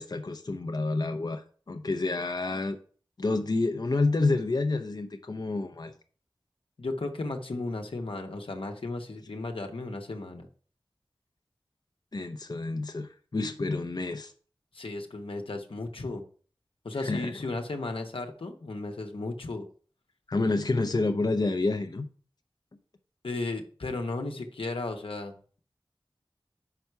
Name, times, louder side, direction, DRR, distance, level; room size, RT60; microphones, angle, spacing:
voice 1, 0.0-2.8 3.2-5.9 12.1-14.3 16.9-17.3 20.3-22.1, left 3 dB, 50° left, 6 dB, 0.6 m, -29 dB
voice 2, 6.8-10.5 14.7-16.2 16.8-19.6 23.2-25.3, left 2 dB, 85° left, 4 dB, 1.0 m, -35 dB
5.7 x 4.7 x 5.5 m, 0.43 s
wide cardioid pair, 65°, 9 cm